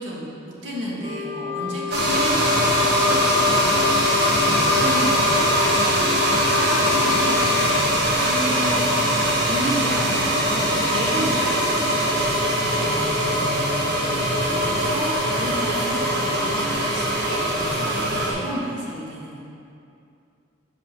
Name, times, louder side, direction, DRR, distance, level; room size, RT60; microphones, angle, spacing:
voice 1, 0.0-7.8 8.2-8.8 9.1-12.2 14.6-19.4, right 1 dB, 85° right, -5 dB, 1.7 m, -31 dB
Wind instrument woodwind instrument, 1.0-7.7, left 11 dB, 30° right, 0.8 m, -28 dB
sound 1, 1.9-18.3, equal, 60° right, 1.3 m, -21 dB
voice 2, 4.5-5.0 12.8-14.1, left 1 dB, 35° left, 3 dB, 0.6 m, -35 dB
5.4 x 5.3 x 6.5 m, 2.5 s
head